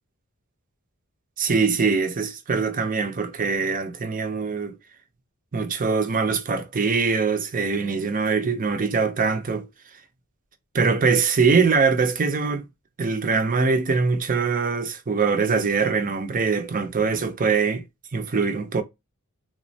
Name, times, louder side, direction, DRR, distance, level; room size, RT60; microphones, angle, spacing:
voice 1, 1.4-4.8 5.5-9.7 10.7-12.6 13.0-17.8 18.1-18.8, right 5 dB, 40° right, 0.5 m, -23 dB
3.6 x 2.1 x 2.6 m
head